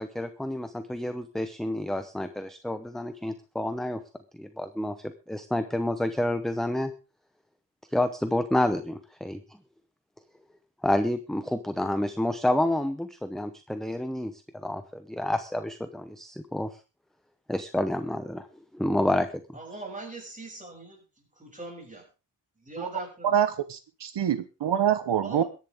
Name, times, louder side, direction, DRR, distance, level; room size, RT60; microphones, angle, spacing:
voice 1, 0.0-4.0 4.4-6.9 7.9-9.4 10.8-14.3 14.6-16.7 17.5-18.5 18.7-19.3, left 1 dB, ahead, 9 dB, 0.9 m, -29 dB
voice 2, 19.5-22.0 22.6-23.3 25.2-25.5, right 2 dB, 20° right, 0 dB, 6.9 m, -41 dB
voice 3, 23.2-25.4, right 9 dB, 70° right, 11 dB, 1.1 m, -25 dB
22.5 x 10.5 x 3.6 m, 0.32 s
wide cardioid pair, 165°, 42 cm